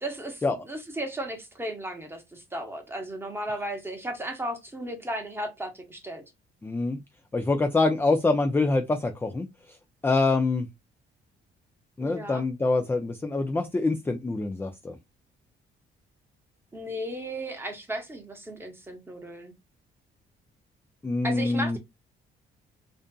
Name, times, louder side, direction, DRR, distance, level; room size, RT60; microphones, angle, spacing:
voice 1, 0.0-6.2 12.0-12.4 16.7-19.5 21.2-21.8, right 1 dB, 10° right, 0.9 m, -35 dB
voice 2, 6.6-7.0 7.3-9.5 10.0-10.7 12.0-14.9 21.0-21.8, left 3 dB, 10° left, 0.3 m, -25 dB
2.5 x 2.4 x 2.2 m
cardioid pair, 90°, 20 cm